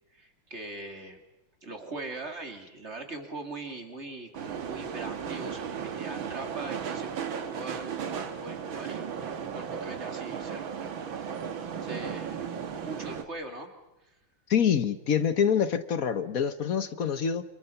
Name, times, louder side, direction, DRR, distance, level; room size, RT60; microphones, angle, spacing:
voice 1, 0.1-1.2 1.6-7.1 7.4-10.8 11.1-13.7 14.0-14.1, right 2 dB, 35° right, 4 dB, 3.1 m, -42 dB
sound 1, 4.3-13.2, right 7 dB, 85° right, 2.3 m, -35 dB
voice 2, 14.5-17.4, left 7 dB, 50° left, 12 dB, 1.3 m, -26 dB
28.5 x 27.5 x 5.8 m, 0.92 s
omnidirectional pair, 2.1 m